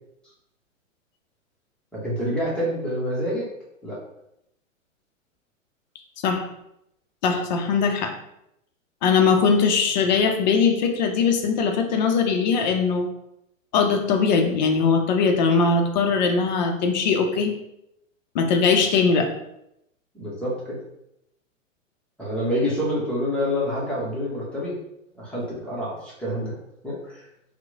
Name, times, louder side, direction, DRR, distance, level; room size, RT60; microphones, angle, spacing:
voice 1, 1.9-3.4 3.8-4.0 20.1-20.8 22.2-24.7 25.1-26.5 26.8-27.2, equal, 5° left, -7 dB, 0.7 m, -27 dB
voice 2, 7.2-8.1 9.0-13.1 13.7-17.5 18.3-19.3, left 5 dB, 35° left, 4 dB, 0.4 m, -20 dB
2.9 x 2.1 x 3.5 m, 0.81 s
figure-of-eight pair, 110°, 39 cm